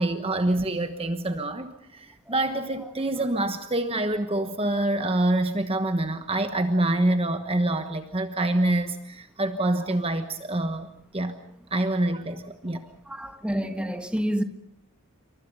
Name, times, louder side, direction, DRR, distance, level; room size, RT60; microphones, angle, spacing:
voice 1, 0.0-10.9 11.1-11.4 11.7-12.8, right 1 dB, 25° right, 1.2 m, -26 dB
voice 2, 13.1-14.4, equal, 5° right, 1.6 m, -28 dB
28.0 x 24.5 x 5.5 m
head